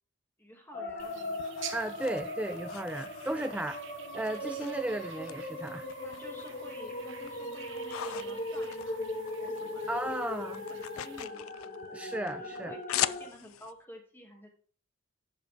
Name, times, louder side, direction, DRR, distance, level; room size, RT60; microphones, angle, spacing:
voice 1, 0.4-1.7 3.3-3.5 4.4-4.7 6.0-9.0 9.4-10.0 10.7-11.5 12.4-14.5, equal, 10° left, 1 dB, 2.4 m, -50 dB
sound 1, 0.7-13.3, left 1 dB, 40° left, 1.7 m, -39 dB
sound 2, 0.9-3.8 4.2-5.3 5.7-6.7 7.0-9.6 9.9-13.7, left 12 dB, 80° left, 0.4 m, -40 dB
sound 3, 1.0-11.3, right 9 dB, 60° right, 1.1 m, -50 dB
voice 2, 1.7-3.8 4.1-5.9 9.9-10.6 11.9-12.7, right 1 dB, 5° right, 9 dB, 0.3 m, -35 dB
11.0 x 6.9 x 3.5 m, 0.41 s
head